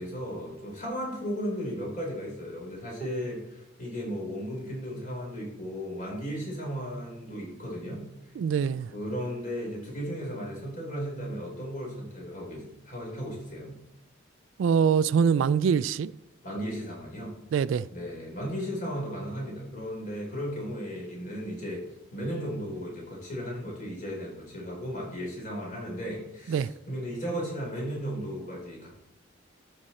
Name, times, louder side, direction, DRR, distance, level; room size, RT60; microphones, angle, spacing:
voice 1, 0.0-8.0 8.9-13.8 16.4-17.3 17.9-21.8 22.1-28.9, equal, 45° left, 3.9 m, -35 dB
voice 2, 8.4-8.9 14.6-16.1 17.5-17.9 26.5-26.7, right 6 dB, 75° right, 0.3 m, -24 dB
12.5 x 5.2 x 4.3 m
head